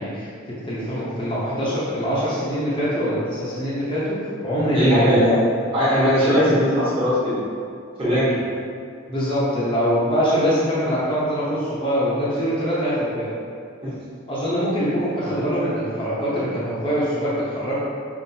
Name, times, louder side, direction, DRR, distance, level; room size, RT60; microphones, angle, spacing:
voice 1, 0.0-5.2 6.3-6.4 9.1-13.3 14.3-17.8, equal, 25° left, -9 dB, 0.7 m, -23 dB
voice 2, 4.7-5.3 5.7-7.4 8.0-8.4 13.8-13.9, equal, 25° right, -10 dB, 1.2 m, -19 dB
5.3 x 2.5 x 2.7 m, 2.3 s
head